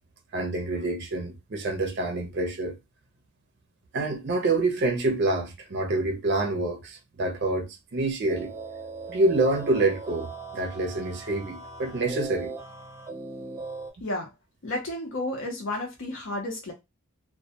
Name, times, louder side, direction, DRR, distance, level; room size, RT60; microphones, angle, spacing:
voice 1, 0.3-2.7 3.9-8.5 9.1-12.5, right 2 dB, 55° right, 0.5 m, -27 dB
sound 1, 8.3-13.9, right 4 dB, 15° right, 0.6 m, -39 dB
voice 2, 14.6-16.7, left 1 dB, 60° left, 0.6 m, -32 dB
2.2 x 2.1 x 2.7 m
head